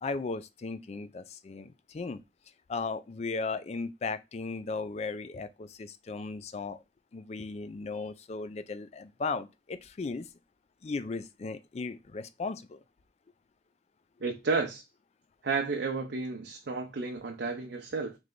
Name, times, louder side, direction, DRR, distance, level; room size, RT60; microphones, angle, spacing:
voice 1, 0.0-2.2 2.7-6.8 7.1-10.3 10.8-12.8, left 4 dB, 35° left, 0.3 m, -36 dB
voice 2, 14.2-14.8 15.4-18.2, right 4 dB, 75° right, 0.6 m, -32 dB
3.2 x 3.2 x 3.8 m
head